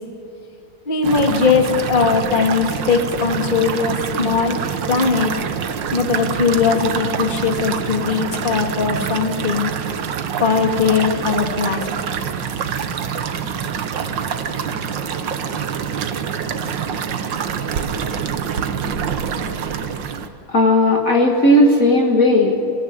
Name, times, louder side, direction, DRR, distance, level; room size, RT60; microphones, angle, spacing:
voice 1, 0.9-4.6 4.9-5.3 5.9-9.7 10.4-11.9, left 5 dB, 25° left, 4 dB, 2.0 m, -19 dB
sound 1, 1.0-20.3, right 7 dB, 60° right, 1.7 m, -25 dB
voice 2, 20.5-22.5, left 1 dB, 45° left, 1 dB, 1.9 m, -14 dB
25.5 x 15.0 x 9.6 m, 3.0 s
omnidirectional pair, 2.3 m